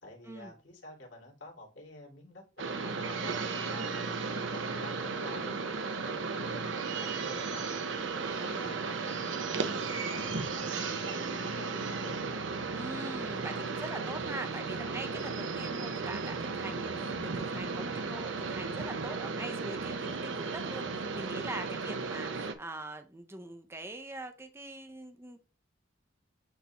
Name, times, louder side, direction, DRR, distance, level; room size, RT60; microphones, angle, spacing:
voice 1, 0.0-3.3 3.7-7.8 8.1-9.1 9.6-12.7 21.9-22.1, left 1 dB, 75° left, 3.0 m, -49 dB
sound 1, 2.6-22.5, right 4 dB, 75° right, 0.9 m, -35 dB
voice 2, 8.2-8.7 9.5-9.9 12.7-25.4, right 2 dB, 15° right, 0.6 m, -43 dB
10.0 x 3.5 x 2.9 m
head